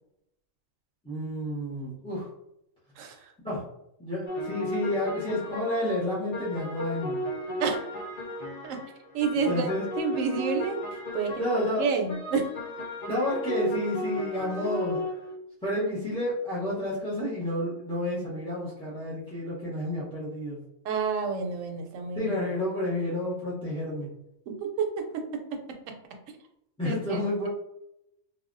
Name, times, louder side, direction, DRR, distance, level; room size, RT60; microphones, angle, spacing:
voice 1, 1.0-2.3 3.4-3.6 4.0-7.2 9.4-9.9 11.4-12.0 13.1-15.0 15.6-20.6 22.1-24.1 26.8-27.5, left 1 dB, 5° left, -8 dB, 0.4 m, -30 dB
sound 1, 4.3-9.0 9.2-15.4, equal, 80° left, 0.3 m, -35 dB
voice 2, 9.1-9.7 10.0-10.8 11.1-11.4 11.8-12.5 20.8-22.3 24.5-25.2 26.8-27.2, right 5 dB, 75° right, 4 dB, 0.9 m, -29 dB
3.4 x 2.2 x 2.5 m, 0.82 s
omnidirectional pair, 1.4 m